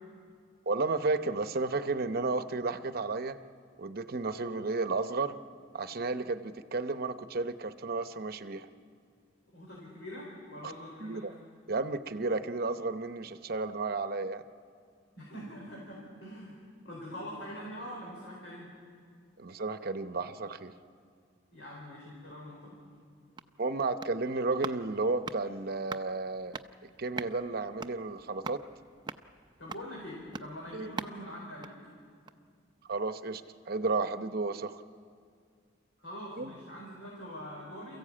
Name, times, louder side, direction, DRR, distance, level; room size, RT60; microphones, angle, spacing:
voice 1, 0.7-3.4 3.8-5.4 5.7-8.7 10.6-10.7 11.0-11.3 11.7-14.4 19.4-20.7 23.6-26.6 27.0-28.6 30.7-30.9 32.9-34.8 36.4-36.5, right 3 dB, 50° right, 10 dB, 0.8 m, -32 dB
voice 2, 9.5-11.3 15.2-16.6 16.8-18.7 21.5-22.8 29.6-31.8 36.0-38.0, equal, 75° left, -4 dB, 4.6 m, -44 dB
sound 1, 23.1-32.6 32.9-33.0, right 4 dB, 25° right, 0.5 m, -45 dB
28.0 x 15.0 x 8.7 m, 2.2 s
head